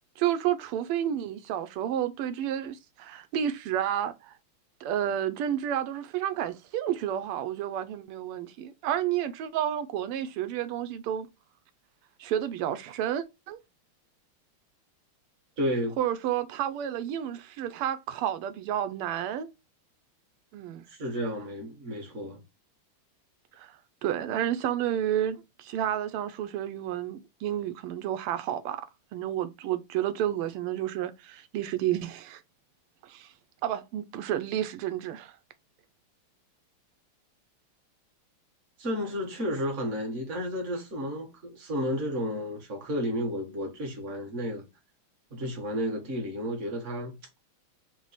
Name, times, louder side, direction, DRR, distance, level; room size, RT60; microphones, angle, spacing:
voice 1, 0.2-4.3 4.8-11.3 12.2-13.6 16.0-19.5 20.5-20.8 23.6-23.7 24.0-28.8 29.1-32.4 33.0-33.3 33.6-35.4, right 10 dB, 90° right, 1.5 m, -30 dB
voice 2, 15.6-16.0 20.9-22.4 38.8-44.7 45.3-47.1, equal, 40° right, 1.3 m, -32 dB
4.6 x 2.1 x 4.0 m
omnidirectional pair, 2.4 m